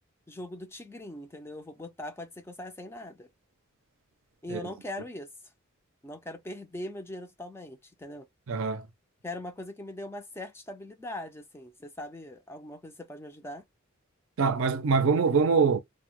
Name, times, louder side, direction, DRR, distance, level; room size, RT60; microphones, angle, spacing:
voice 1, 0.3-3.3 4.4-5.3 6.0-8.3 9.2-13.6, left 1 dB, 10° left, 0.3 m, -41 dB
voice 2, 8.5-8.9 14.4-15.8, right 5 dB, 75° right, 0.5 m, -24 dB
2.1 x 2.0 x 2.9 m
head